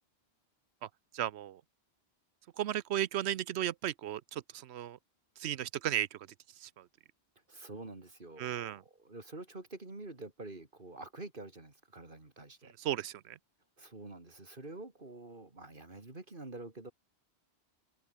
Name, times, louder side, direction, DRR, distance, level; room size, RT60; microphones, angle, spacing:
voice 1, 1.1-1.6 2.6-5.0 5.4-6.2 6.6-6.8 8.4-8.8 12.8-13.4, right 11 dB, 75° right, 0.9 m, -35 dB
voice 2, 7.5-12.8 13.8-16.9, right 2 dB, 50° right, 3.7 m, -47 dB
omnidirectional pair, 1.1 m